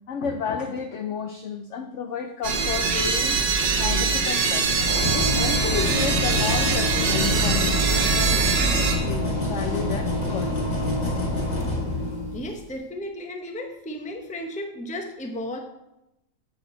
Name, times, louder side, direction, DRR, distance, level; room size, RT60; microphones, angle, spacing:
voice 1, 0.1-3.4 3.8-4.7 5.1-10.5, left 6 dB, 80° left, 7 dB, 0.6 m, -32 dB
sound 1, 2.4-9.0, right 5 dB, 85° right, 1.8 m, -23 dB
sound 2, 4.6-12.6, left 1 dB, 40° left, 2.0 m, -27 dB
voice 2, 12.3-15.6, left 1 dB, 10° left, 4 dB, 0.4 m, -34 dB
8.9 x 6.0 x 4.3 m, 0.89 s
omnidirectional pair, 1.9 m